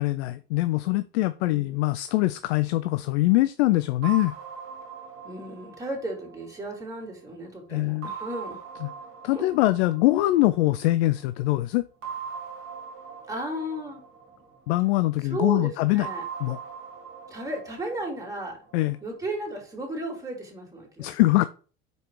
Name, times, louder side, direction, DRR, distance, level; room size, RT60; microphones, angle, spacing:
voice 1, 0.0-4.3 7.7-8.1 8.8-8.9 9.2-11.9 14.7-16.1 16.4-16.6 18.7-19.0 21.0-21.4, left 18 dB, 75° left, 0.5 m, -23 dB
voice 2, 1.4-1.8 5.2-8.6 9.3-9.5 13.3-14.0 15.2-16.2 17.3-18.6 19.0-21.2, right 1 dB, 10° right, 2.9 m, -34 dB
sound 1, 4.0-7.4 8.0-10.9 12.0-15.1 16.0-19.1, right 6 dB, 40° right, 2.1 m, -41 dB
5.4 x 4.4 x 4.7 m
hypercardioid pair, 85°, 33 cm